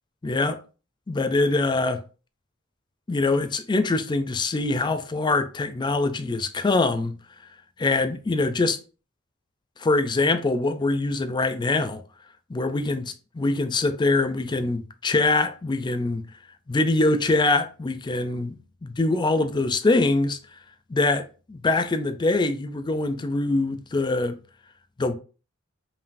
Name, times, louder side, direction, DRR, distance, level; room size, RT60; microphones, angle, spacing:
voice 1, 0.2-0.6 1.1-2.0 3.1-7.1 7.8-8.8 9.8-12.0 12.5-16.3 16.7-18.5 18.8-20.4 20.9-24.4 25.0-25.1, left 2 dB, 20° left, 0.4 m, -23 dB
5.2 x 2.7 x 2.5 m
head